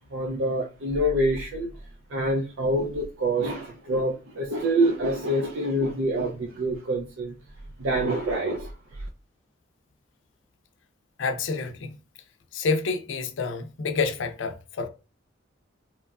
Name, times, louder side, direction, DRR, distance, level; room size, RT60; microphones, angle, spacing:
voice 1, 0.1-1.7 2.1-7.3 7.8-8.7, right 1 dB, 80° right, 0.4 m, -26 dB
voice 2, 11.2-12.0 12.5-14.9, left 4 dB, 70° left, 0.4 m, -28 dB
2.9 x 2.3 x 2.2 m
head